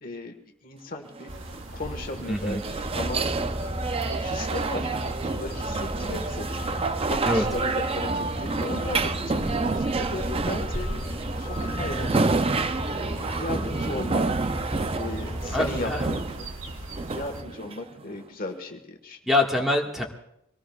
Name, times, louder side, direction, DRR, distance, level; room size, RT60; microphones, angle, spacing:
voice 1, 0.0-0.3 0.6-1.3 1.7-3.3 4.0-4.9 5.2-6.7 7.1-12.4 12.9-14.2 14.9-16.5 17.1-19.2, left 2 dB, 40° left, 4 dB, 1.6 m, -36 dB
sound 1, 1.2-18.2, right 3 dB, 25° right, 0.4 m, -29 dB
sound 2, 1.3-17.4, right 1 dB, 60° right, 1.9 m, -40 dB
voice 2, 2.3-2.6 7.2-7.4 15.5-16.0 19.3-20.0, left 2 dB, ahead, -1 dB, 1.7 m, -24 dB
Truck, 2.8-16.2, left 1 dB, 20° left, 3.7 m, -35 dB
24.5 x 19.0 x 2.4 m, 0.79 s
head